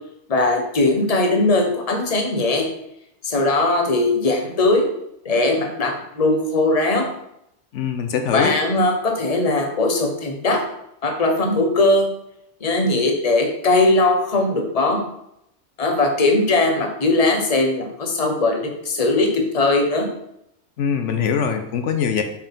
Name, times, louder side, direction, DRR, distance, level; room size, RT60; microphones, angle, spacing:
voice 1, 0.3-2.7 3.2-4.9 5.2-7.1 8.3-10.6 11.0-12.1 12.6-15.0 15.8-20.1, left 2 dB, 35° left, 3 dB, 1.0 m, -19 dB
voice 2, 7.7-8.6 20.8-22.2, left 7 dB, 80° left, 6 dB, 1.0 m, -22 dB
5.6 x 4.6 x 5.2 m, 0.79 s
omnidirectional pair, 1.2 m